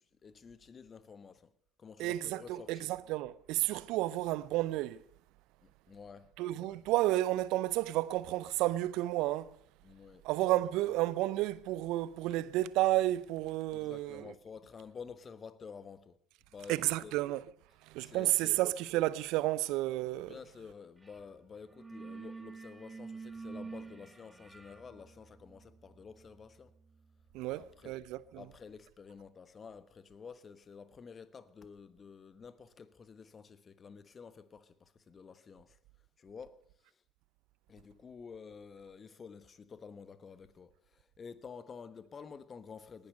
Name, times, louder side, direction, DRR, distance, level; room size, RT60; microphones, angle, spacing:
voice 1, 0.0-1.5 1.8-2.9 5.6-6.8 9.8-10.2 10.6-11.0 13.7-16.2 16.5-17.1 18.0-18.6 20.3-26.7 27.5-28.0 28.3-35.8 36.2-36.6 37.7-43.1, left 5 dB, 35° left, 1.2 m, -51 dB
voice 2, 2.0-5.0 6.4-9.5 10.2-14.2 16.7-17.4 17.9-20.3 27.3-28.2, right 16 dB, 60° right, 0.7 m, -31 dB
sound 1, 21.0-21.3 21.5-28.2, right 4 dB, 15° right, 1.3 m, -49 dB
19.0 x 10.5 x 6.7 m
hypercardioid pair, 60°, 0 cm